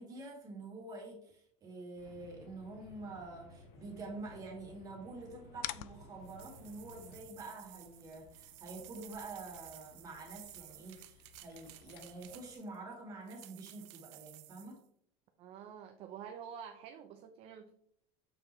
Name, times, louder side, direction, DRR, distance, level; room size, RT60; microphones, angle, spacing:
voice 1, 0.0-14.8, right 2 dB, 25° right, -1 dB, 2.2 m, -47 dB
sound 1, 2.0-7.2, left 2 dB, 90° left, 1.6 m, -57 dB
sound 2, 5.6-12.6, left 16 dB, 50° left, 0.4 m, -51 dB
sound 3, 6.2-12.8 13.3-14.8, right 16 dB, 80° right, 0.6 m, -55 dB
voice 2, 15.4-17.7, right 8 dB, 40° right, 6 dB, 0.6 m, -48 dB
6.9 x 5.9 x 3.1 m, 0.69 s
cardioid pair, 160°, 15 cm